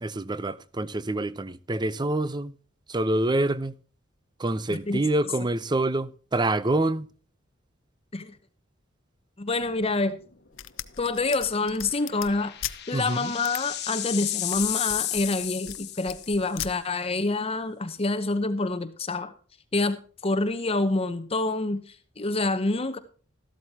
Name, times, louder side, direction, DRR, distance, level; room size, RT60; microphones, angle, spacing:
voice 1, 0.0-2.5 2.9-3.7 4.4-7.1 12.9-13.3, right 2 dB, 20° right, 0.6 m, -26 dB
voice 2, 4.7-5.0 8.1-8.3 9.4-10.2 11.0-12.6 12.9-19.3 19.7-23.0, left 2 dB, 30° left, 0.9 m, -27 dB
sound 1, 9.6-10.0 10.3-10.4 11.8-16.5, left 13 dB, 55° left, 1.2 m, -33 dB
sound 2, 10.5-12.8 13.4-13.6 14.3-15.8 16.1-16.7, left 11 dB, 80° left, 0.7 m, -37 dB
13.5 x 12.5 x 2.8 m
head